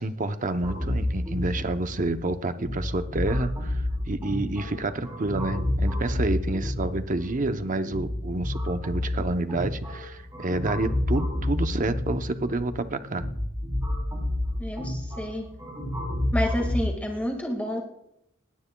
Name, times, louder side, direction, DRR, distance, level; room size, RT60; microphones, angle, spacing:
voice 1, 0.0-13.3, right 2 dB, 40° right, 9 dB, 0.8 m, -29 dB
sound 1, 0.6-16.8, left 1 dB, 20° right, 5.4 m, -30 dB
voice 2, 14.6-15.5 16.3-17.8, equal, 10° left, 1 dB, 1.9 m, -29 dB
20.0 x 16.5 x 2.3 m, 0.79 s
head